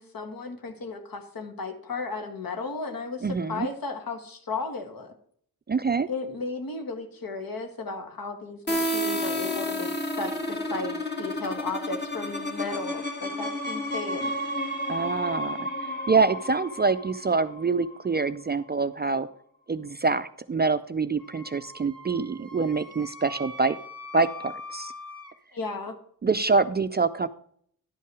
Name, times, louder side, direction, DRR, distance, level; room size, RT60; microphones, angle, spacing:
voice 1, 0.0-5.1 6.1-14.3 25.5-26.0, left 3 dB, 65° left, 6 dB, 1.6 m, -35 dB
voice 2, 3.2-3.7 5.7-6.1 14.9-15.7 16.1-19.3 19.7-23.8 24.1-24.9 26.2-27.3, right 4 dB, 30° right, 11 dB, 0.3 m, -25 dB
sound 1, 8.7-18.2, equal, 30° left, 1.5 m, -31 dB
Wind instrument woodwind instrument, 21.2-25.3, left 2 dB, 10° right, 1.3 m, -42 dB
11.0 x 5.6 x 4.7 m, 0.62 s
wide cardioid pair, 105°, 37 cm